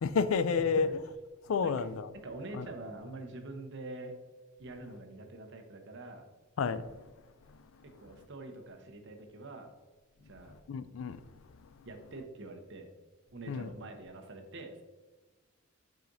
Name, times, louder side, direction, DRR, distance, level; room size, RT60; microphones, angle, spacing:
voice 1, 0.0-0.9 1.5-2.1 2.5-2.7 6.6-6.8 10.7-11.2 13.5-13.7, left 5 dB, 75° left, 0.4 m, -30 dB
voice 2, 2.2-4.1 4.6-6.3 7.8-9.7 10.2-10.6 11.8-12.9 13.3-14.8, right 2 dB, 60° right, 0.9 m, -45 dB
7.5 x 5.0 x 2.6 m
head